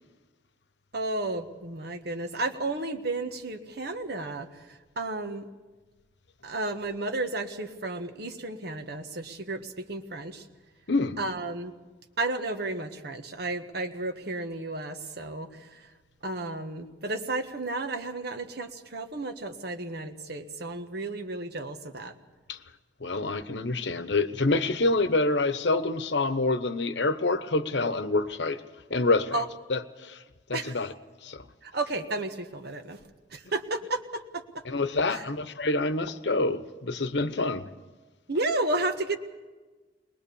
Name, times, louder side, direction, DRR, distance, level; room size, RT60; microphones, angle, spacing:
voice 1, 0.9-4.5 5.0-5.4 6.4-10.4 11.2-11.7 12.2-15.8 16.2-22.1 29.3-29.4 30.5-30.7 31.6-33.0 33.3-34.4 35.1-35.2 38.3-39.2, right 2 dB, 60° right, 1.5 m, -32 dB
voice 2, 23.0-28.6 28.9-29.4 29.7-30.2 30.5-30.9 31.2-31.5 34.6-37.7, left 2 dB, 70° left, 1.0 m, -27 dB
21.5 x 21.0 x 7.0 m
head